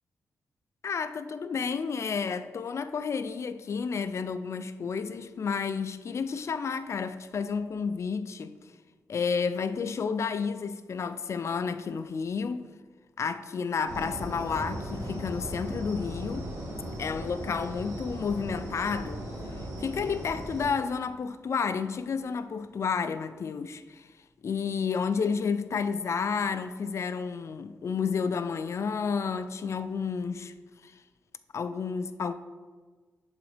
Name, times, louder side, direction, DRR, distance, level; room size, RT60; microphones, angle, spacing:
voice 1, 0.8-8.6 9.1-12.7 13.2-16.5 17.0-19.2 19.8-24.1 24.4-30.5 30.8-31.0 31.5-32.3, left 5 dB, 55° left, 0.4 m, -31 dB
sound 1, 13.9-20.7, right 1 dB, 75° right, 2.2 m, -37 dB
11.0 x 3.9 x 3.3 m
cardioid pair, 70°, 6 cm